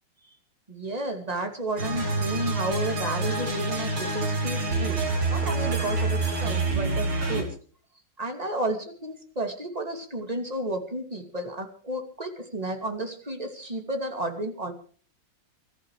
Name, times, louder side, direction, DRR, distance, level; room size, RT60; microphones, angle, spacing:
voice 1, 0.7-5.0 5.3-7.5 8.2-14.7, right 1 dB, 20° right, 5 dB, 2.5 m, -32 dB
sound 1, 1.8-7.4, right 2 dB, 85° right, 4.5 m, -27 dB
26.5 x 14.0 x 3.3 m, 0.43 s
omnidirectional pair, 2.2 m